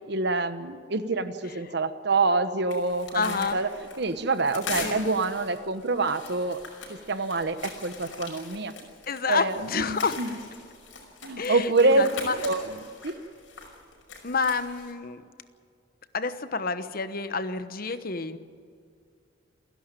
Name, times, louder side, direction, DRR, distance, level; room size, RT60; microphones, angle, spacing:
voice 1, 0.1-3.7 4.0-6.6 6.9-8.7 9.3-10.3 11.2-12.1 12.4-12.8 13.0-13.1, right 3 dB, 60° right, 11 dB, 1.2 m, -26 dB
sound 1, 2.7-14.9, left 4 dB, 85° left, 5.4 m, -41 dB
voice 2, 3.1-3.6 4.8-5.0 9.1-10.2 11.4-12.3 14.2-15.2 16.1-18.4, left 4 dB, 50° left, 11 dB, 1.1 m, -29 dB
28.5 x 11.5 x 9.1 m, 2.3 s
head